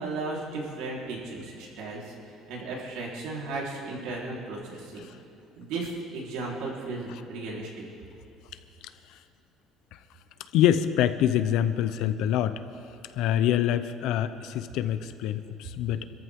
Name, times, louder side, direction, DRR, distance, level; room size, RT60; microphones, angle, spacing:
voice 1, 0.0-5.1 5.6-7.7, right 3 dB, 80° right, -4 dB, 4.1 m, -35 dB
voice 2, 10.5-12.6 13.2-16.0, left 10 dB, 65° left, 11 dB, 0.8 m, -25 dB
26.0 x 14.0 x 3.8 m, 2.8 s
cardioid pair, 165°, 0 cm